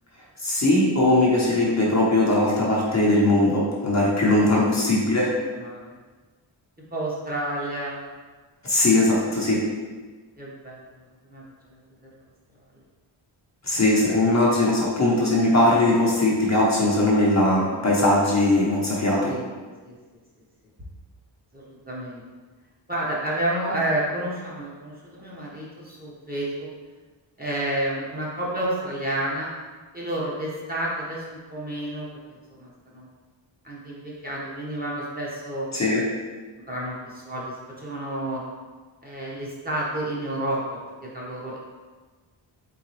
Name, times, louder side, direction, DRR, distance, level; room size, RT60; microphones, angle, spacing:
voice 1, 0.4-5.4 8.6-9.7 13.6-19.4 35.7-36.1, left 1 dB, 35° left, -5 dB, 0.8 m, -20 dB
voice 2, 5.2-5.8 6.9-8.1 10.4-10.8 11.3-11.4 14.7-14.9 19.2-19.4 19.8-19.9 21.5-22.2 22.9-26.7 27.4-29.5 29.9-32.1 32.6-33.1 33.6-35.7 36.7-38.4 39.0-41.6, right 1 dB, 20° right, -6 dB, 1.0 m, -30 dB
3.9 x 3.6 x 3.0 m, 1.4 s
wide cardioid pair, 120°, 47 cm